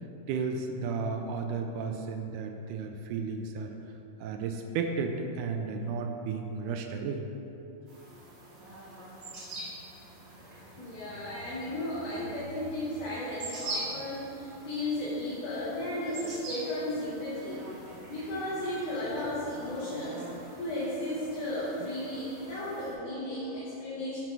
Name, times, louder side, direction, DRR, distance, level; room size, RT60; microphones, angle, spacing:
voice 1, 0.3-3.8 4.2-7.2, right 5 dB, 80° right, 4 dB, 2.0 m, -33 dB
sound 1, 7.9-22.9, right 1 dB, 50° right, 1.4 m, -44 dB
voice 2, 10.7-17.6 18.1-20.3 20.6-24.2, left 1 dB, 70° left, -9 dB, 2.6 m, -34 dB
6.8 x 5.8 x 4.6 m, 3.0 s
omnidirectional pair, 3.8 m